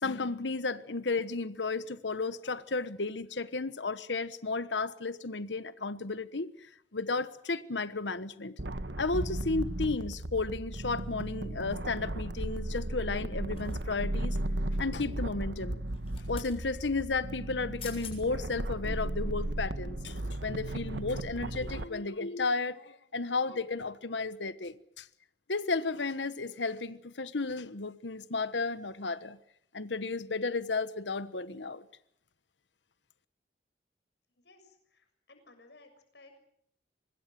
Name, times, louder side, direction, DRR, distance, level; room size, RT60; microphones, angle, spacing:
voice 1, 0.0-6.5 6.9-8.5 9.0-14.4 14.7-15.8 16.3-25.1 25.5-29.4 29.7-31.8, left 3 dB, 90° left, 1.2 m, -33 dB
sound 1, 8.6-21.8, right 1 dB, 80° right, 1.5 m, -35 dB
sound 2, 13.6-14.1 15.9-16.5 17.5-17.6 17.8-18.2 18.7-18.9, left 8 dB, 35° left, 7.0 m, -47 dB
voice 2, 34.4-36.4, left 2 dB, 75° left, 6.8 m, -58 dB
25.0 x 21.0 x 7.6 m
head